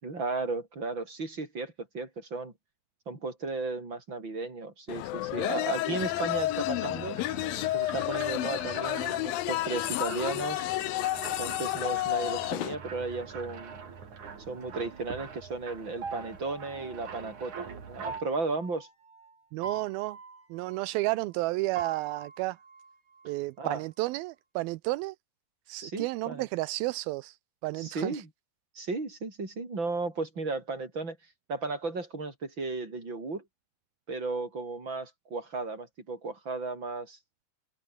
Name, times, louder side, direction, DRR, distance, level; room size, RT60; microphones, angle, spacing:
voice 1, 0.0-2.5 3.1-7.2 7.7-10.7 11.4-13.8 14.5-18.9 23.6-23.8 25.8-26.5 27.8-28.3 28.7-31.2 31.5-33.4 34.1-37.2, right 3 dB, 25° right, 6.5 m, -35 dB
sound 1, 4.9-12.8, left 17 dB, 75° left, 2.3 m, -31 dB
sound 2, 5.9-18.2, right 6 dB, 45° right, 4.8 m, -44 dB
sound 3, 12.6-14.4 16.0-17.6 18.0-21.5 21.8-23.9, right 4 dB, 65° right, 9.1 m, -45 dB
voice 2, 19.5-20.2 20.5-22.6 23.3-25.2 25.7-27.4 27.6-28.2, right 20 dB, 80° right, 2.2 m, -32 dB
omnidirectional pair, 4.8 m